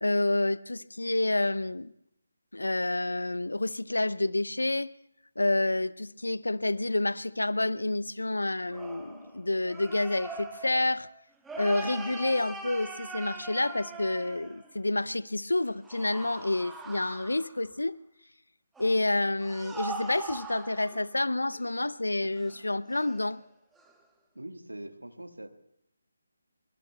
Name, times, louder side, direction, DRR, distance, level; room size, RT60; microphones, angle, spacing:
voice 1, 0.0-1.9 2.5-4.9 5.4-11.1 11.6-18.0 18.8-23.4, left 2 dB, 75° left, 18 dB, 0.6 m, -29 dB
sound 1, 8.7-14.8 15.8-17.7 18.8-21.2 21.5-21.7 22.4-22.6 22.9-23.3 23.8-23.9, right 3 dB, 5° right, 1.1 m, -42 dB
voice 2, 24.3-25.5, right 1 dB, 85° right, 6 dB, 1.6 m, -42 dB
25.5 x 24.0 x 2.3 m, 0.77 s
figure-of-eight pair, 150°, 0 cm